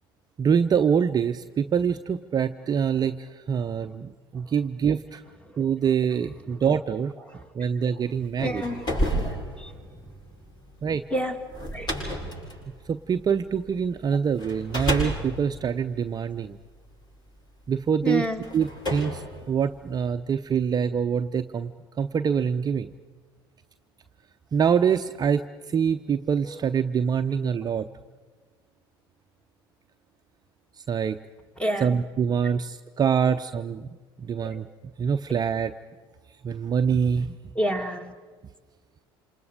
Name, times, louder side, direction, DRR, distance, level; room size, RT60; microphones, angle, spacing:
voice 1, 0.4-5.2 5.6-7.1 7.5-8.6 10.8-11.0 12.9-16.6 17.7-18.3 18.5-21.7 22.0-22.9 24.5-25.4 25.7-27.9 30.8-31.2 31.8-33.9 34.2-34.7 35.0-35.7 36.4-37.4, right 7 dB, 30° right, 9 dB, 0.7 m, -25 dB
sound 1, 8.2-13.8 14.4-16.9 17.7-17.8 18.4-20.1, equal, 35° left, 7.8 m, -31 dB
voice 2, 8.4-10.0 11.1-11.4 11.7-11.9 18.0-18.4 26.4-26.6 31.6-31.9 34.4-34.6 37.5-38.1, equal, 10° left, 7 dB, 2.1 m, -30 dB
27.5 x 27.0 x 5.1 m, 1.4 s
hypercardioid pair, 65°, 13 cm